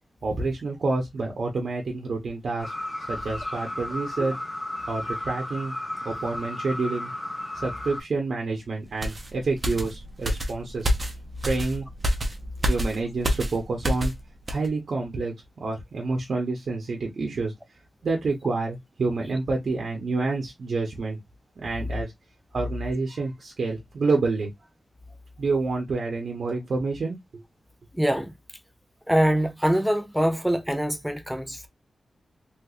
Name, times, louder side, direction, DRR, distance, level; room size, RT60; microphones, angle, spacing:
voice 1, 0.2-2.7 3.1-4.4 4.9-5.7 6.0-7.1 7.5-10.9 11.4-11.9 12.7-14.1 14.5-17.5 18.0-21.2 21.6-22.1 22.5-24.5 25.4-27.4, right 3 dB, 60° right, 0.9 m, -28 dB
sound 1, 2.6-8.0, left 1 dB, 20° left, 1.3 m, -34 dB
sound 2, 9.0-14.2 14.5-14.7, equal, 35° right, 0.8 m, -28 dB
voice 2, 27.9-28.3 29.1-31.7, equal, 5° right, 0.6 m, -24 dB
3.2 x 3.1 x 2.4 m
wide cardioid pair, 135°, 0 cm